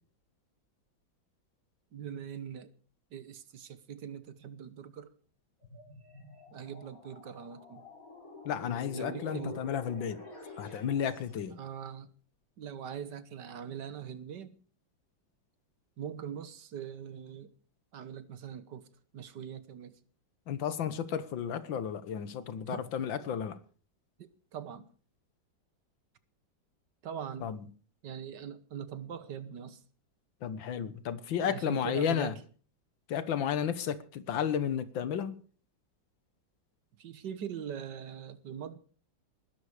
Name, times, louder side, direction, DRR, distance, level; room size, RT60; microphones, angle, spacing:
voice 1, 1.9-2.7 3.1-5.1 6.5-7.8 8.9-9.7 11.5-12.1 12.6-14.5 16.0-17.5 17.9-18.9 19.1-20.0 22.6-22.9 24.2-24.9 27.0-27.5 28.0-29.8 31.4-32.4 37.0-38.8, right 8 dB, 65° right, 1.7 m, -42 dB
sound 1, 5.6-11.4, left 3 dB, 45° left, 5.9 m, -48 dB
voice 2, 8.5-10.2 10.6-11.6 20.5-23.6 27.4-27.6 30.4-32.3 33.1-35.4, left 8 dB, 80° left, 1.9 m, -33 dB
20.0 x 11.0 x 4.9 m
omnidirectional pair, 2.1 m